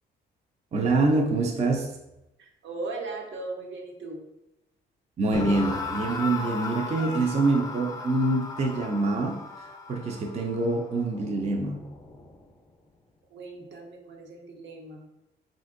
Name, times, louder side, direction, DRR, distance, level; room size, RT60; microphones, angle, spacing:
voice 1, 0.7-1.9 5.2-11.8, right 2 dB, 35° right, 1 dB, 0.4 m, -25 dB
voice 2, 2.4-4.2 13.3-15.0, right 3 dB, 65° right, 1 dB, 0.7 m, -38 dB
sound 1, 5.3-12.4, left 3 dB, 20° left, 0.5 m, -36 dB
3.3 x 2.6 x 2.5 m, 0.93 s
cardioid pair, 90°, 20 cm